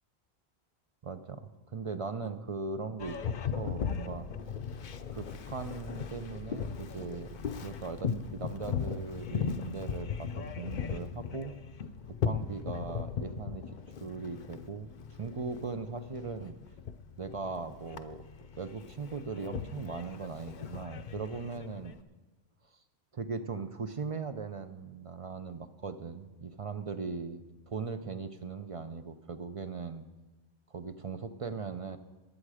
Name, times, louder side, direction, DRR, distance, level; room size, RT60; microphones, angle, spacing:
voice 1, 1.0-4.3 5.1-11.5 12.1-13.6 14.0-16.6 17.2-18.2 18.6-21.9 23.1-30.0 30.7-32.0, right 4 dB, 40° right, 9 dB, 0.5 m, -39 dB
Boat Water vehicle, 3.0-22.0, left 6 dB, 55° left, 0.7 m, -38 dB
21.5 x 7.6 x 4.9 m, 1.2 s
omnidirectional pair, 1.1 m